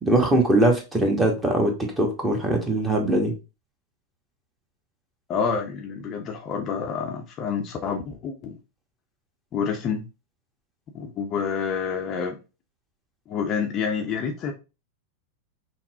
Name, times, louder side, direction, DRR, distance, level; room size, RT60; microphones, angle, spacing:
voice 1, 0.0-3.3, right 1 dB, 10° right, 2 dB, 1.1 m, -21 dB
voice 2, 5.3-8.6 9.5-10.0 10.9-12.4 13.3-14.5, left 6 dB, 30° left, 2 dB, 0.6 m, -28 dB
5.7 x 2.0 x 2.7 m, 0.29 s
figure-of-eight pair, 90°, 0 cm